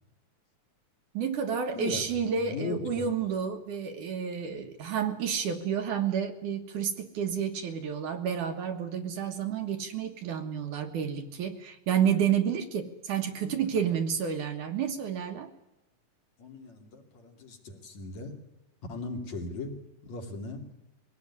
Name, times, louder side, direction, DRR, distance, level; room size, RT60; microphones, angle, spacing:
voice 1, 1.1-15.5, right 7 dB, 70° right, 6 dB, 2.9 m, -30 dB
voice 2, 1.7-2.1 2.4-3.1 13.4-13.8 16.4-18.4 18.9-19.7 20.0-20.6, left 3 dB, 55° left, 3 dB, 3.7 m, -38 dB
22.5 x 17.5 x 9.7 m, 0.94 s
omnidirectional pair, 3.9 m